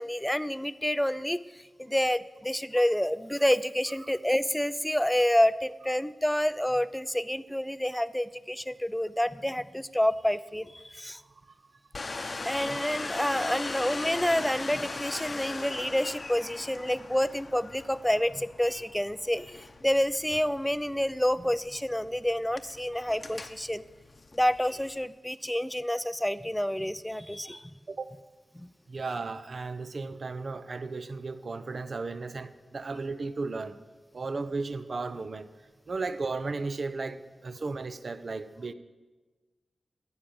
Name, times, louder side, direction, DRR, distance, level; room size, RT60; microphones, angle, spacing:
voice 1, 0.0-1.4 1.8-11.2 12.4-23.8 24.3-27.7 28.5-28.7, equal, 5° left, 15 dB, 0.5 m, -28 dB
voice 2, 11.1-11.6 12.1-12.2 12.7-12.8 27.9-28.1 28.9-33.8 34.1-35.5 35.9-38.7, right 3 dB, 55° right, 12 dB, 0.7 m, -35 dB
Domestic sounds home sounds, 11.9-25.0, left 3 dB, 40° left, 0.8 m, -40 dB
12.5 x 9.0 x 7.0 m, 1.2 s
wide cardioid pair, 85°, 0 cm